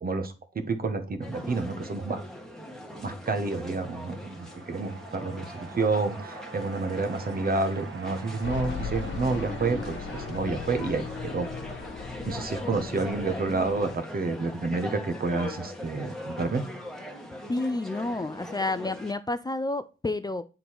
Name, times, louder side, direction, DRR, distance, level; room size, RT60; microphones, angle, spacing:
voice 1, 0.0-2.2 3.0-11.5 12.2-16.6, right 3 dB, 45° right, 1.1 m, -29 dB
sound 1, 1.2-19.1, left 1 dB, ahead, 1.4 m, -41 dB
sound 2, 3.2-12.7, right 4 dB, 70° right, 1.2 m, -46 dB
sound 3, 8.4-14.0, left 5 dB, 60° left, 1.4 m, -37 dB
voice 2, 17.5-20.4, left 2 dB, 20° left, 0.5 m, -30 dB
8.3 x 3.9 x 4.6 m
cardioid pair, 90°, 21 cm